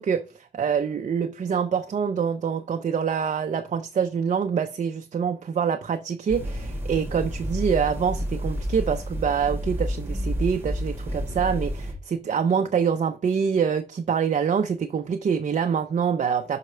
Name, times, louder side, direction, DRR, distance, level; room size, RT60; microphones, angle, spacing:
voice 1, 0.0-16.6, right 7 dB, 50° right, 0.6 m, -25 dB
sound 1, 6.3-11.9, equal, 15° right, 1.7 m, -30 dB
6.2 x 5.7 x 3.2 m
wide cardioid pair, 140°, 16 cm